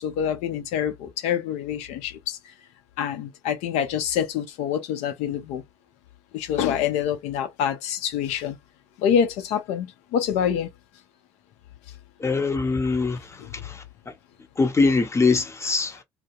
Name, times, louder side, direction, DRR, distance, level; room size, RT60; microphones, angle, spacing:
voice 1, 0.0-2.4 3.0-5.6 6.3-8.6 9.0-10.7 13.4-13.5, left 8 dB, 65° left, 0.6 m, -26 dB
voice 2, 12.2-13.2 13.6-13.8 14.6-15.9, left 4 dB, 20° left, 0.8 m, -22 dB
2.2 x 2.1 x 2.9 m
hypercardioid pair, 65°, 13 cm